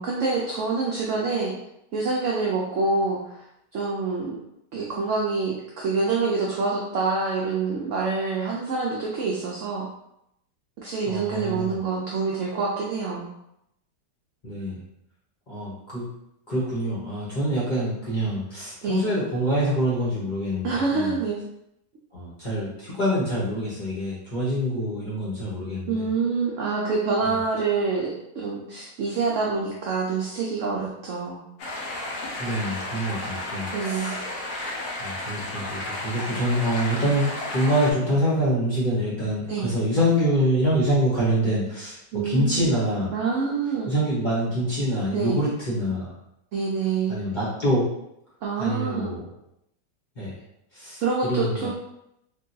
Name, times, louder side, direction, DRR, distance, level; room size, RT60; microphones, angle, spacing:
voice 1, 0.0-1.5 1.9-3.4 3.7-4.4 4.7-9.9 10.8-13.3 18.8-19.0 20.6-21.4 25.9-31.4 33.7-34.2 39.5-39.7 42.1-42.7 43.1-43.9 45.1-45.4 46.5-47.2 48.4-49.1 51.0-51.7, right 4 dB, 85° right, -3 dB, 0.6 m, -26 dB
voice 2, 11.1-11.8 14.4-14.8 15.5-16.1 16.5-21.2 22.1-25.9 32.4-34.2 35.0-42.0 42.2-43.1 43.9-46.1 47.1-47.9 48.6-49.2 50.2-50.3 50.7-51.7, equal, 35° left, -8 dB, 0.8 m, -25 dB
sound 1, 31.6-37.9, left 1 dB, 65° left, 0.9 m, -33 dB
3.6 x 2.2 x 2.6 m, 0.81 s
omnidirectional pair, 1.8 m